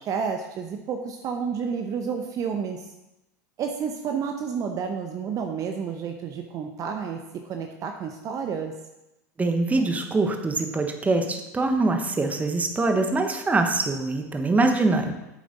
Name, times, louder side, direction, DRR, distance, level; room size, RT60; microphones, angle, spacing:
voice 1, 0.0-2.8 3.6-8.7, right 6 dB, 40° right, 4 dB, 0.8 m, -30 dB
voice 2, 9.4-15.1, right 3 dB, 15° right, 6 dB, 1.1 m, -23 dB
8.3 x 7.4 x 4.1 m, 0.93 s
hypercardioid pair, 95°, 9 cm